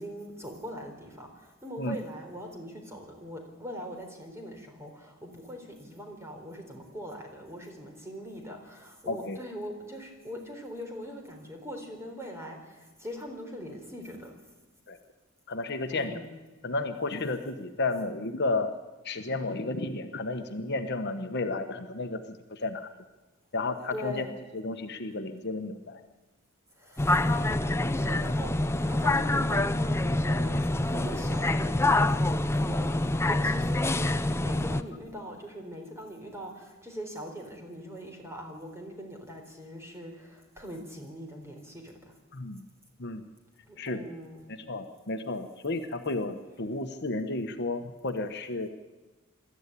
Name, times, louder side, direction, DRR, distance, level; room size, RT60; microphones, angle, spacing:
voice 1, 0.0-14.3 15.9-16.3 23.9-24.3 26.8-28.5 28.8-41.9 43.7-44.4, equal, 15° right, 2 dB, 4.1 m, -41 dB
voice 2, 9.1-9.4 14.9-15.0 15.5-16.2 16.6-18.7 19.0-22.9 23.5-24.3 24.5-26.0 42.3-42.7 43.0-43.2 43.8-44.0 44.5-48.7, left 2 dB, 50° left, 6 dB, 1.2 m, -32 dB
sound 1, 27.0-34.8, left 2 dB, 10° left, 0.7 m, -26 dB
22.5 x 13.5 x 10.0 m, 1.2 s
head